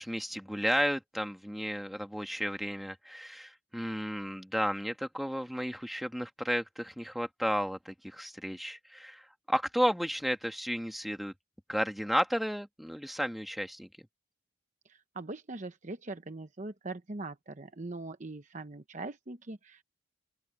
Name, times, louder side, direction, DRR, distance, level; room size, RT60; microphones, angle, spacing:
voice 1, 0.0-11.3 11.7-13.9, equal, ahead, 1.7 m, -33 dB
voice 2, 14.8-19.8, right 2 dB, 35° right, 0.9 m, -41 dB
open air
head